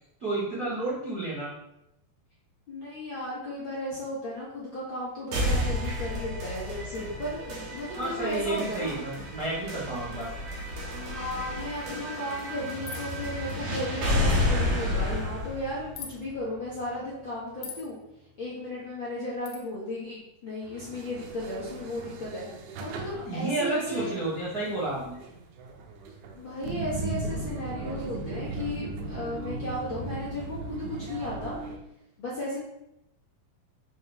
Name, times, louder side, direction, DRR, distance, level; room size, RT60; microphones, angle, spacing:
voice 1, 0.2-1.5 7.9-10.3 23.2-25.2, right 2 dB, 45° right, -8 dB, 1.2 m, -31 dB
voice 2, 2.7-8.9 10.9-18.0 18.4-22.5 22.8-24.1 26.3-31.6 32.2-32.6, left 1 dB, 45° left, -7 dB, 1.8 m, -35 dB
sound 1, 5.3-17.3, left 1 dB, 60° right, 2.8 m, -31 dB
sound 2, 12.9-13.2 15.9-16.2 17.6-17.9 19.4-19.6, left 7 dB, 80° left, 1.7 m, -40 dB
sound 3, 20.6-31.8, right 2 dB, 85° right, 2.9 m, -38 dB
6.4 x 6.4 x 3.5 m, 0.84 s
omnidirectional pair, 4.4 m